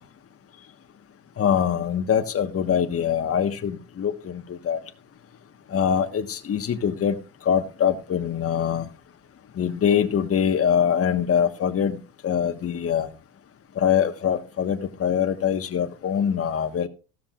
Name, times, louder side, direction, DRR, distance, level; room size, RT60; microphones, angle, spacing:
voice 1, 1.4-4.8 5.7-7.1 7.4-8.9 9.6-12.0 12.2-13.1 13.8-16.9, left 8 dB, 35° left, 1.4 m, -23 dB
14.5 x 13.5 x 2.4 m
hypercardioid pair, 80°, 42 cm